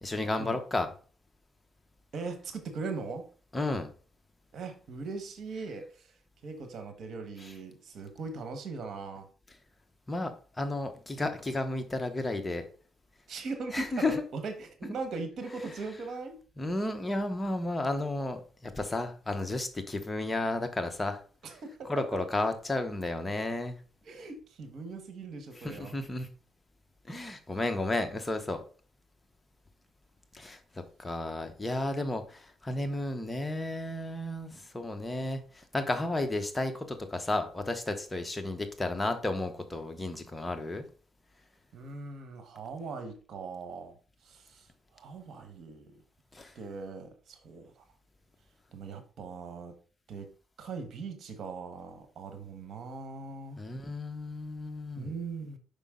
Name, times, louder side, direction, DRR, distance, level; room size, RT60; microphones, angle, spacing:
voice 1, 0.0-0.9 3.5-3.9 10.1-10.3 10.6-12.6 13.7-14.1 16.6-21.2 21.9-23.7 25.6-26.3 27.1-28.6 30.3-30.6 31.0-40.8 46.3-46.5 53.6-55.1, left 2 dB, 20° left, 1.0 m, -32 dB
voice 2, 2.1-3.3 4.5-6.1 6.4-9.3 13.3-16.4 21.4-22.2 24.0-26.0 41.7-44.0 44.2-44.7 44.9-46.0 46.5-47.8 48.7-49.7 50.1-50.3 50.6-53.6 55.0-55.6, right 4 dB, 65° right, 1.3 m, -40 dB
5.4 x 5.1 x 3.7 m
cardioid pair, 90°, 0 cm